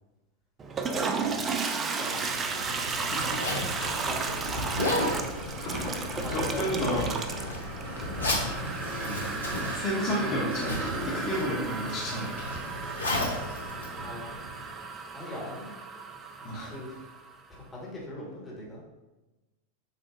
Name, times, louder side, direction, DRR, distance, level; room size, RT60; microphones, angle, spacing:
Toilet flush, 0.6-17.3, right 4 dB, 25° right, 0.4 m, -34 dB
voice 1, 0.8-2.4 4.1-4.2 4.5-5.1 6.2-6.9 7.4-7.7 14.0-14.3 15.1-15.7 16.6-17.1 17.5-18.8, left 1 dB, 15° left, -5 dB, 1.4 m, -40 dB
Zipper (clothing), 2.1-14.7, left 1 dB, 75° left, 0.8 m, -35 dB
sound 1, 3.7-8.7, left 1 dB, 55° left, 1.4 m, -38 dB
voice 2, 6.3-7.2 9.0-9.3 9.7-12.5 16.4-16.7, equal, 40° left, -6 dB, 1.0 m, -31 dB
6.7 x 2.5 x 2.5 m, 1.1 s
figure-of-eight pair, 90°, 0 cm